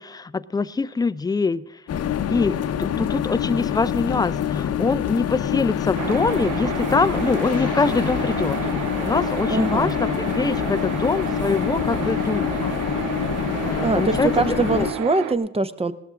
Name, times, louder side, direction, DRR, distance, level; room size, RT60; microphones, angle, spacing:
voice 1, 0.0-1.8 2.3-8.6 9.0-12.7 13.6-14.9, left 4 dB, 15° left, 16 dB, 0.4 m, -24 dB
sound 1, 1.9-14.9, left 9 dB, 55° left, 0.8 m, -26 dB
sound 2, 6.0-15.3, right 8 dB, 80° right, 0.9 m, -31 dB
voice 2, 9.5-9.9 13.8-15.9, right 3 dB, 20° right, 13 dB, 0.7 m, -23 dB
18.5 x 13.0 x 3.6 m, 0.83 s
cardioid pair, 90°, 30 cm